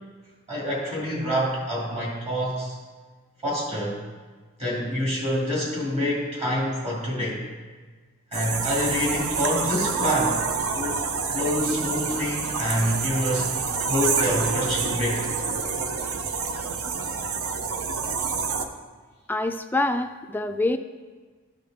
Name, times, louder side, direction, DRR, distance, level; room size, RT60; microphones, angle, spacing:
voice 1, 0.5-2.7 3.4-4.0 4.6-7.5 8.3-10.4 10.7-15.3, equal, 30° right, -5 dB, 2.5 m, -27 dB
sound 1, 8.3-18.7, right 5 dB, 70° right, 0.7 m, -27 dB
voice 2, 19.3-20.8, left 2 dB, 10° left, 7 dB, 0.3 m, -25 dB
13.5 x 5.1 x 3.6 m, 1.4 s
head